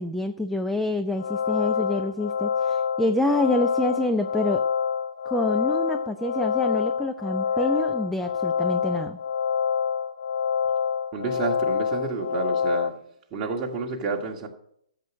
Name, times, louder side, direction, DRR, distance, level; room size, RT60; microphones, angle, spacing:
voice 1, 0.0-4.6 5.3-9.2, left 1 dB, ahead, 6 dB, 0.5 m, -27 dB
sound 1, 1.1-12.9, left 7 dB, 60° left, 0.8 m, -26 dB
voice 2, 7.4-7.8 11.1-12.9 13.3-14.5, right 4 dB, 20° right, 1 dB, 2.0 m, -30 dB
13.5 x 7.5 x 6.3 m, 0.72 s
figure-of-eight pair, 130°, 4 cm